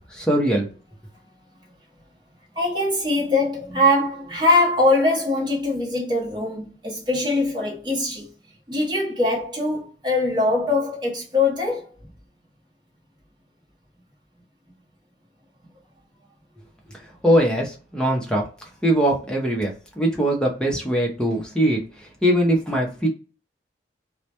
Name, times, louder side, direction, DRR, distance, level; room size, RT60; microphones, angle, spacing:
voice 1, 0.1-0.7 17.2-18.4 18.8-21.8 22.2-23.1, equal, 5° left, 0.5 m, -21 dB
voice 2, 2.6-8.3 8.7-11.9, left 2 dB, 25° right, 0.8 m, -22 dB
2.1 x 2.1 x 2.8 m
head